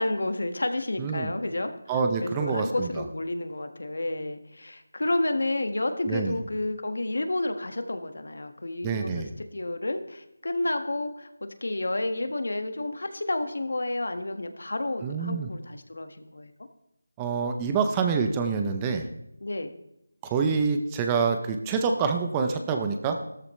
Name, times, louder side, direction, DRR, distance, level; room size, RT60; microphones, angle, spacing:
voice 1, 0.0-16.5 19.4-19.8, left 2 dB, 75° left, 7 dB, 1.6 m, -30 dB
voice 2, 1.0-1.3 1.9-3.1 6.1-6.4 8.8-9.3 15.0-15.5 17.2-19.1 20.2-23.2, right 5 dB, 10° right, 5 dB, 0.6 m, -26 dB
14.5 x 13.5 x 3.2 m, 0.82 s
figure-of-eight pair, 170°, 0 cm